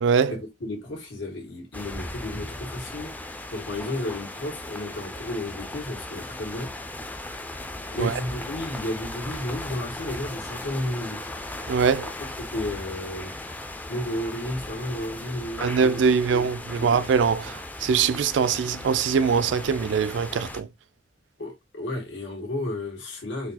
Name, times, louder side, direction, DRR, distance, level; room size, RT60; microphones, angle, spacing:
voice 1, 0.0-0.4 8.0-8.1 11.7-12.1 15.6-20.7, right 6 dB, 80° right, 0.3 m, -23 dB
voice 2, 0.6-3.1 3.5-6.7 7.9-11.3 12.4-13.3 13.9-16.0 16.3-16.5 16.7-16.9 21.4-23.5, left 1 dB, 85° left, 1.5 m, -32 dB
sound 1, 1.7-20.6, left 1 dB, 10° left, 0.3 m, -37 dB
3.9 x 2.3 x 2.8 m
head